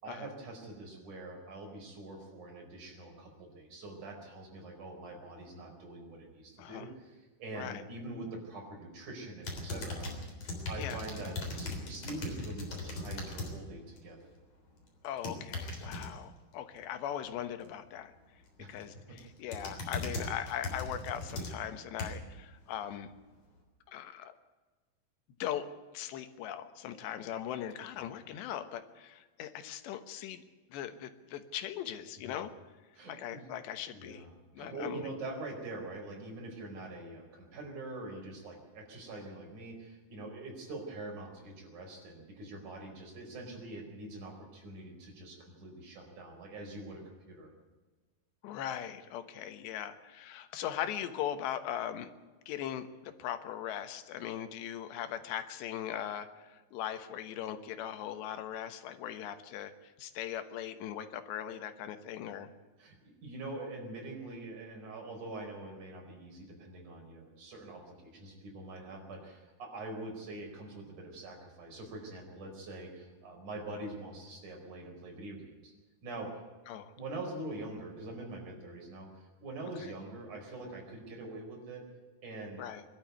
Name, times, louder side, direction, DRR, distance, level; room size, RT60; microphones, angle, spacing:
voice 1, 0.0-10.3 10.7-14.3 18.6-19.2 32.2-32.3 33.0-33.5 33.9-34.3 34.6-47.0 47.3-47.5 62.8-75.7 76.0-76.4 77.0-81.8 82.2-82.7, right 2 dB, 45° right, 1 dB, 5.7 m, -44 dB
voice 2, 6.6-6.9 7.6-7.8 10.8-11.0 15.0-18.1 18.7-23.1 23.9-24.4 25.4-25.7 25.9-30.4 30.7-32.5 33.1-34.3 34.5-35.0 48.4-52.1 52.5-62.5 76.7-76.9 79.8-79.9 82.6-82.8, left 10 dB, 90° left, 10 dB, 3.4 m, -39 dB
sound 1, 9.4-13.5 13.9-14.3 15.0-16.1 18.5-18.8 19.2-22.3 22.9-23.0, left 2 dB, 40° left, 4.4 m, -39 dB
23.0 x 12.0 x 9.4 m, 1.3 s
omnidirectional pair, 4.8 m